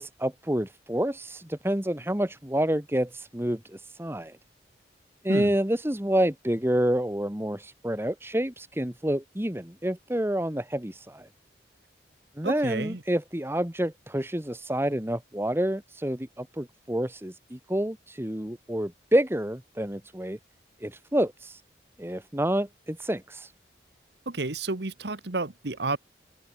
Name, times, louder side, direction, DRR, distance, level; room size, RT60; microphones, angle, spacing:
voice 1, 0.0-4.4 5.2-11.3 12.4-20.4 20.8-21.6 22.0-23.5, right 1 dB, 15° right, 1.5 m, -28 dB
voice 2, 12.4-13.0 24.3-26.0, right 3 dB, 60° right, 1.3 m, -31 dB
head